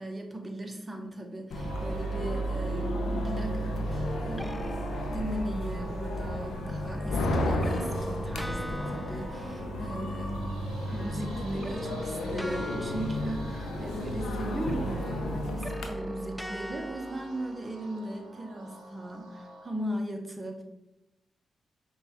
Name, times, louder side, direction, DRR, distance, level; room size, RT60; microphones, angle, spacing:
voice 1, 0.0-4.6 5.0-20.6, right 1 dB, 30° right, 3 dB, 0.8 m, -38 dB
sound 1, 1.5-15.9, left 2 dB, 75° left, 0.4 m, -34 dB
sound 2, 1.5-19.8, right 3 dB, 80° right, 0.7 m, -38 dB
sound 3, 4.0-5.9 6.9-10.6 10.8-14.4 14.9-18.3, equal, 5° left, 0.3 m, -42 dB
5.3 x 2.3 x 2.8 m, 0.89 s
supercardioid pair, 40°, 0 cm